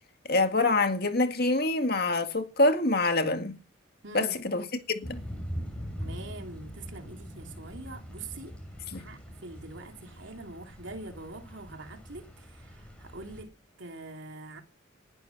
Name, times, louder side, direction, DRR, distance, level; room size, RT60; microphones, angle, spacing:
voice 1, 0.3-3.6 4.1-5.2 8.9-9.0, left 2 dB, 50° left, 1.9 m, -26 dB
voice 2, 4.0-4.3 6.0-8.5 8.9-12.2 12.6-12.7 13.0-13.5 13.8-14.6, right 2 dB, 65° right, 3.0 m, -44 dB
Thunder / Rain, 5.0-13.4, equal, 5° left, 6.5 m, -42 dB
20.0 x 11.5 x 5.9 m
head